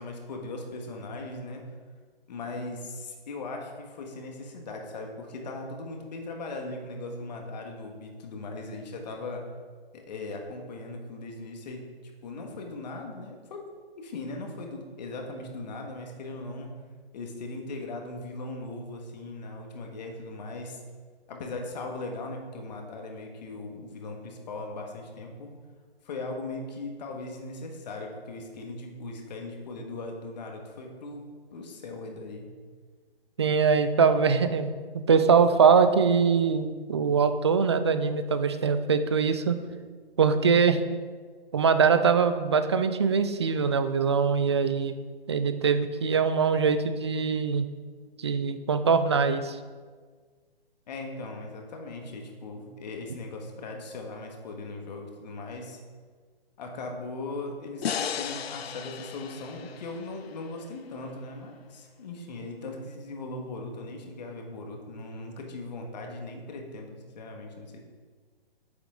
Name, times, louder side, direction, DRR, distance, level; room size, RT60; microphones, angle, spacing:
voice 1, 0.0-1.6 2.3-9.4 9.9-11.9 12.2-13.7 14.0-16.7 17.1-20.8 21.3-25.5 26.0-31.3 31.5-32.5 50.9-55.8 56.6-67.8, left 2 dB, 45° left, 2 dB, 1.6 m, -39 dB
voice 2, 33.4-34.7 34.9-39.6 40.2-40.8 41.5-44.9 45.3-47.7 48.2-49.6, right 5 dB, 30° right, 10 dB, 0.4 m, -23 dB
sound 1, 57.8-61.0, left 8 dB, 75° left, 0.5 m, -35 dB
9.1 x 7.2 x 3.8 m, 1.5 s
figure-of-eight pair, 140°, 31 cm